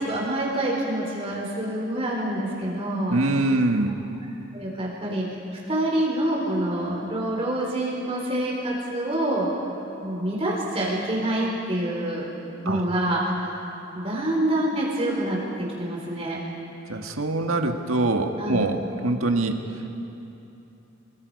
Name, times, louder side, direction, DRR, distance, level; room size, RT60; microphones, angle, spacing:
voice 1, 0.0-3.2 4.5-5.4 5.7-9.5 10.0-12.3 12.6-13.6 13.9-16.4 18.4-18.6, right 1 dB, 30° right, -3 dB, 3.6 m, -26 dB
voice 2, 3.1-4.0 12.7-12.8 16.9-18.8 19.0-19.6, right 2 dB, 80° right, 4 dB, 1.7 m, -23 dB
27.5 x 22.5 x 5.4 m, 2.9 s
head